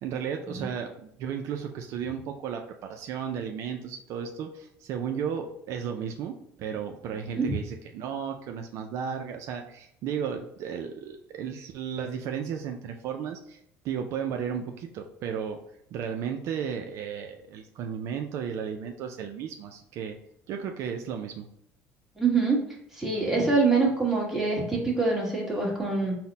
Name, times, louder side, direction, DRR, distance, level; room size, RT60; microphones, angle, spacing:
voice 1, 0.0-15.6 15.9-20.2 20.5-21.5, right 7 dB, 60° right, 4 dB, 0.4 m, -34 dB
voice 2, 22.2-22.6 22.9-26.1, right 4 dB, 5° right, -3 dB, 1.2 m, -25 dB
4.0 x 2.1 x 4.0 m, 0.72 s
cardioid pair, 115°, 6 cm